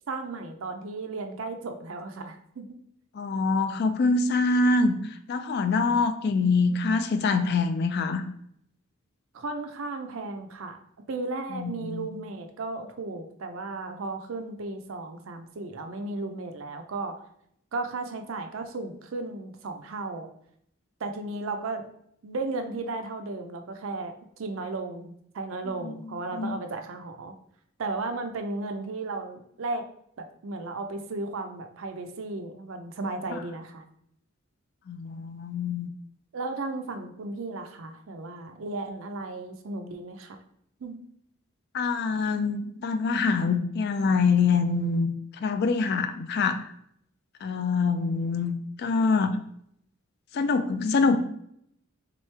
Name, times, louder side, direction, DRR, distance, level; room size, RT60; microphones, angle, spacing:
voice 1, 0.1-2.8 9.3-10.8 11.1-17.2 17.7-20.3 21.0-21.9 22.2-27.3 27.8-29.8 30.2-33.8 36.3-40.4 40.8-41.0, right 3 dB, 65° right, 6 dB, 0.5 m, -35 dB
voice 2, 3.1-8.2 11.5-12.1 25.8-25.9 26.3-26.6 33.3-33.4 34.9-35.9 41.7-45.1 45.4-46.7 47.4-49.4 50.3-51.2, left 4 dB, 50° left, 9 dB, 0.3 m, -25 dB
3.6 x 3.0 x 3.2 m, 0.71 s
head